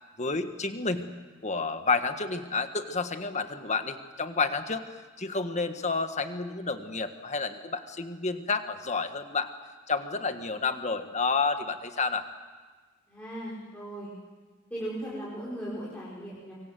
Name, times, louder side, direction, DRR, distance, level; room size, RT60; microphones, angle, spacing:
voice 1, 0.2-1.1 1.4-9.5 9.9-12.3, left 4 dB, 35° left, 8 dB, 1.6 m, -30 dB
voice 2, 13.1-14.1 14.7-16.5, right 1 dB, 5° left, -7 dB, 5.4 m, -37 dB
25.5 x 24.5 x 7.8 m, 1.4 s
head